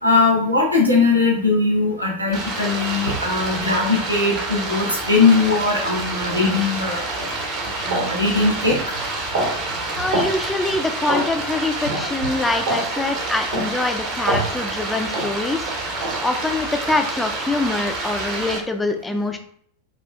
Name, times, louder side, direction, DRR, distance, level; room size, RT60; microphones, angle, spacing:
voice 1, 0.0-7.1 7.8-8.7 14.3-14.4, left 3 dB, 85° right, -2 dB, 0.8 m, -19 dB
Stream, 2.3-18.6, right 2 dB, 40° right, 0.8 m, -28 dB
sound 1, 7.2-7.3 7.9-8.1 8.7-8.9 9.3-9.6 10.1-10.4 11.1-11.3 11.9-12.1 12.7-12.9 13.5-13.7 14.3-14.5 15.1-15.3 16.0-16.2, right 1 dB, 60° right, 1.2 m, -24 dB
voice 2, 10.0-15.8 16.2-19.4, left 2 dB, 10° left, 6 dB, 0.3 m, -24 dB
4.4 x 2.4 x 2.4 m, 0.64 s
figure-of-eight pair, 90°, 0 cm